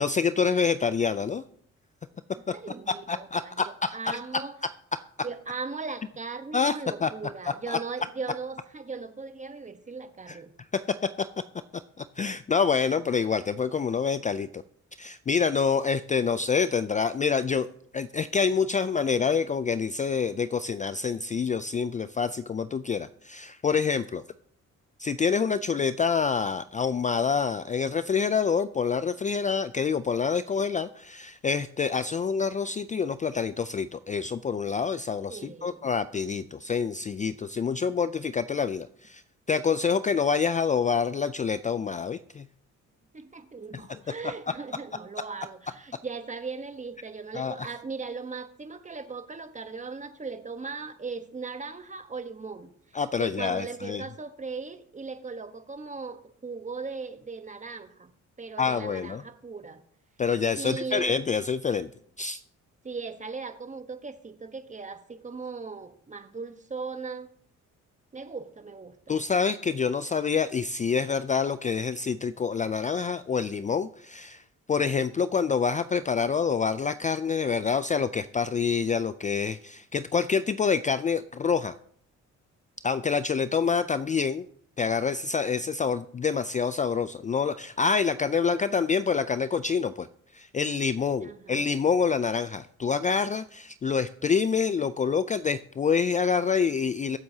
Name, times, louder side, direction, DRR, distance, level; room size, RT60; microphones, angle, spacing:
voice 1, 0.0-1.4 2.5-2.6 3.1-4.2 6.5-7.1 7.4-7.8 10.3-10.4 10.7-10.8 11.2-11.3 12.2-14.6 15.0-17.7 17.9-24.2 25.0-39.2 39.5-42.5 43.9-44.0 44.2-44.3 47.3-47.7 52.9-54.0 58.6-59.2 60.2-61.9 62.2-62.4 69.1-74.4 74.7-81.7 82.8-84.5 84.8-90.1 90.3-97.2, left 6 dB, 25° left, 13 dB, 0.4 m, -27 dB
voice 2, 2.5-4.6 5.2-10.5 35.3-35.8 43.1-52.7 53.2-58.1 58.4-59.8 60.5-61.1 62.8-67.3 68.1-69.2 91.2-91.6, right 4 dB, 25° right, 9 dB, 1.1 m, -38 dB
23.0 x 7.7 x 2.8 m, 0.63 s
cardioid pair, 90°, 30 cm